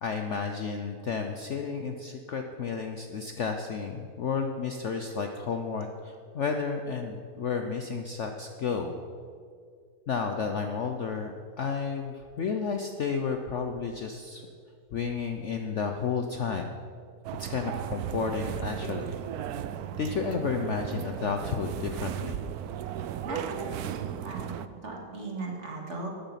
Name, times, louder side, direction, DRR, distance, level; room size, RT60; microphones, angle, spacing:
voice 1, 0.0-8.9 10.1-14.4 14.9-16.7 17.4-19.1 20.0-22.4, left 5 dB, 55° left, 5 dB, 0.8 m, -32 dB
sound 1, 17.2-24.7, right 10 dB, 70° right, 1.0 m, -36 dB
voice 2, 23.2-26.1, right 3 dB, 40° right, -1 dB, 2.2 m, -38 dB
14.0 x 9.1 x 5.7 m, 2.2 s
omnidirectional pair, 1.9 m